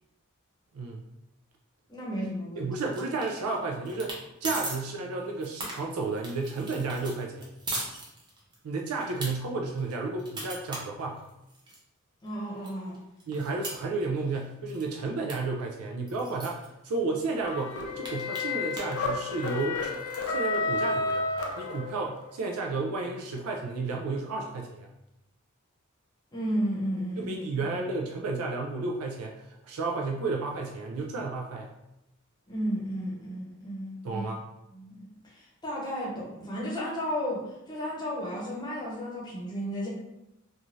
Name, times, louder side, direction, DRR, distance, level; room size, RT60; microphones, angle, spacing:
voice 1, 1.9-2.7 12.2-13.0 26.3-27.7 32.5-34.3 34.7-39.9, equal, 20° left, -4 dB, 0.8 m, -33 dB
voice 2, 2.6-7.5 8.6-11.2 13.3-19.9 20.2-24.9 27.2-31.7 34.0-34.4, right 3 dB, 85° right, 0 dB, 0.4 m, -32 dB
sound 1, 2.9-3.5 3.8-4.2 4.4-4.8 5.2-8.6 9.0-9.3 9.8-11.8 12.3-12.4 12.6-14.4 14.7-14.9 15.3-15.4 15.6-15.7 16.1-16.7 17.2-17.3 17.6-19.0 19.3-20.2, right 1 dB, 20° right, 0.6 m, -38 dB
sound 2, 17.4-22.2, left 3 dB, 90° left, 0.5 m, -31 dB
2.6 x 2.3 x 3.0 m, 0.88 s
head